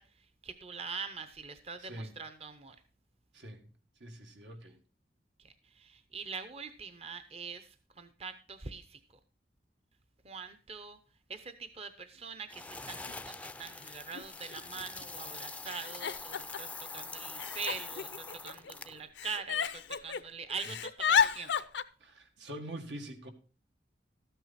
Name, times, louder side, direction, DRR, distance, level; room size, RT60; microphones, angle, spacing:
voice 1, 0.0-2.8 5.4-9.0 10.2-11.0 11.3-21.5, right 5 dB, 35° right, 0.7 m, -43 dB
voice 2, 1.8-2.1 3.3-3.6 4.0-4.7 22.0-23.3, right 1 dB, 85° right, 1.8 m, -44 dB
sound 1, 12.5-19.1, left 3 dB, 10° left, 0.4 m, -44 dB
Giggle, 13.1-13.2 14.1-14.2 14.5-15.0 15.7-16.8 17.4-18.7 19.2-20.2 20.5-21.8, left 7 dB, 80° left, 0.6 m, -32 dB
13.5 x 9.1 x 4.2 m
head